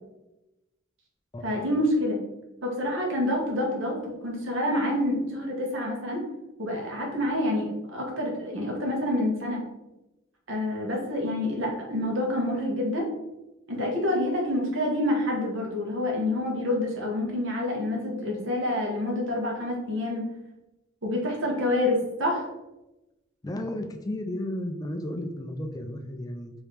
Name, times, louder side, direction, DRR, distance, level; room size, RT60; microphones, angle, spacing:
voice 1, 1.4-2.2 2.6-6.2 6.6-9.6 10.5-13.0 13.7-20.2 21.0-22.5, left 1 dB, 80° right, -1 dB, 1.3 m, -27 dB
voice 2, 23.4-26.5, left 1 dB, 20° left, 6 dB, 0.3 m, -33 dB
4.8 x 3.0 x 3.2 m, 0.97 s
head